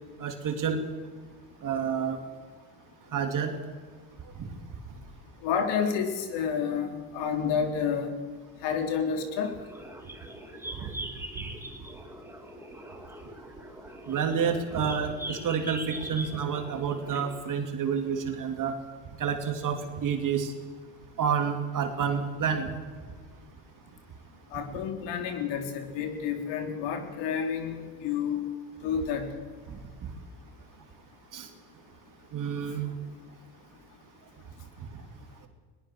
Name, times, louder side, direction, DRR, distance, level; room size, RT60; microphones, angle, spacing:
voice 1, 0.2-0.8 1.6-2.2 3.1-3.6 4.3-4.5 10.7-10.9 14.1-18.8 19.1-20.5 21.2-22.7 29.7-30.1 31.3-31.5 32.3-32.9 34.8-34.9, right 7 dB, 40° right, 5 dB, 3.1 m, -29 dB
voice 2, 5.4-8.1 8.6-9.5 24.5-28.4 28.8-29.3, left 7 dB, 65° left, 5 dB, 3.9 m, -29 dB
sound 1, 9.4-17.4, right 1 dB, 5° right, 3.3 m, -42 dB
21.5 x 19.5 x 6.4 m, 1.5 s
supercardioid pair, 85°, 46 cm